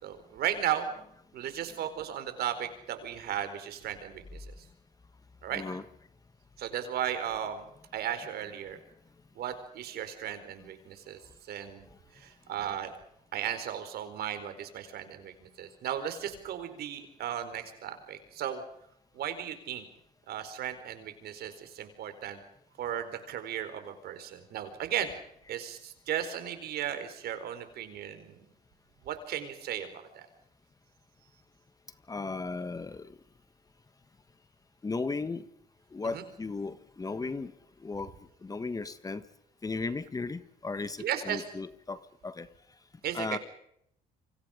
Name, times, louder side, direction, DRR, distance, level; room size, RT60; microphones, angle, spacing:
voice 1, 0.0-0.9 1.3-4.4 5.4-5.6 6.6-7.6 7.9-8.8 9.4-11.2 11.5-11.9 12.1-12.9 13.3-18.6 19.1-19.8 20.3-22.4 22.8-25.1 25.5-28.4 29.0-29.9 30.1-30.3 36.1-36.2 41.0-41.4 43.0-43.4, right 10 dB, 70° right, 9 dB, 4.5 m, -35 dB
voice 2, 5.5-5.8 32.1-33.1 34.8-35.4 35.9-37.5 37.8-38.1 38.4-39.2 39.6-42.5 43.1-43.4, left 3 dB, 20° left, 13 dB, 1.5 m, -36 dB
28.5 x 25.5 x 5.2 m, 0.74 s
cardioid pair, 110°, 17 cm